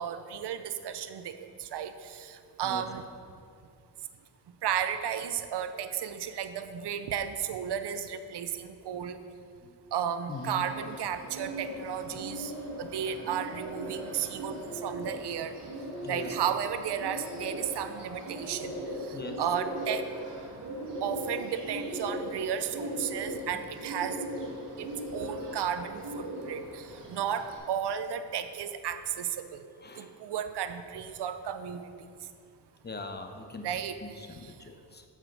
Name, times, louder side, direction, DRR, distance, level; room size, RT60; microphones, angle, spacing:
voice 1, 0.0-3.0 4.6-9.2 9.9-12.5 12.8-15.6 16.1-18.8 19.1-20.0 21.0-24.2 24.8-29.7 30.0-31.9 33.6-34.0 34.4-34.5, right 8 dB, 70° right, 10 dB, 0.6 m, -34 dB
voice 2, 10.3-10.6 16.0-16.3 19.1-19.4 29.8-30.1 32.8-33.7 34.0-35.0, left 3 dB, 25° left, 5 dB, 0.8 m, -41 dB
Bird, 10.3-27.6, right 1 dB, 85° right, 1.3 m, -39 dB
7.4 x 4.9 x 5.3 m, 2.4 s
cardioid pair, 60°, 42 cm